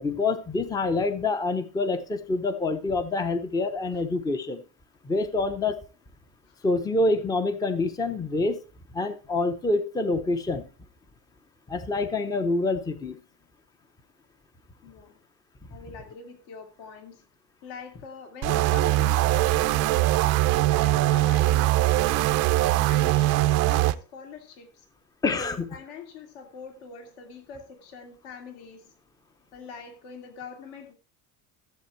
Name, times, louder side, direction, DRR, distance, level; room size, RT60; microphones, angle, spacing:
voice 1, 0.0-4.6 5.0-5.8 6.6-8.6 8.9-10.7 11.7-13.2 25.2-25.7, left 3 dB, 10° left, 0.7 m, -26 dB
voice 2, 14.8-15.2 15.7-17.3 17.6-24.9 25.3-28.9 29.5-30.9, left 6 dB, 55° left, 2.7 m, -44 dB
sound 1, 18.4-23.9, right 16 dB, 35° right, 0.6 m, -22 dB
14.5 x 7.7 x 4.5 m
cardioid pair, 155°, 44 cm